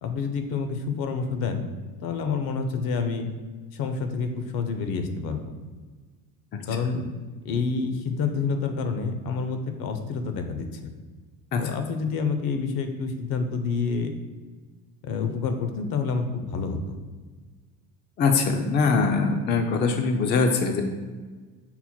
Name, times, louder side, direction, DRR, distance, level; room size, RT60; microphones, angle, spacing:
voice 1, 0.0-1.7 2.0-3.3 3.7-5.6 6.7-7.1 7.4-10.7 11.6-14.1 15.0-17.0, left 5 dB, 60° left, 7 dB, 0.7 m, -28 dB
voice 2, 18.2-20.8, left 4 dB, 25° left, 4 dB, 0.4 m, -22 dB
5.7 x 2.1 x 4.3 m, 1.4 s
supercardioid pair, 95°, 42 cm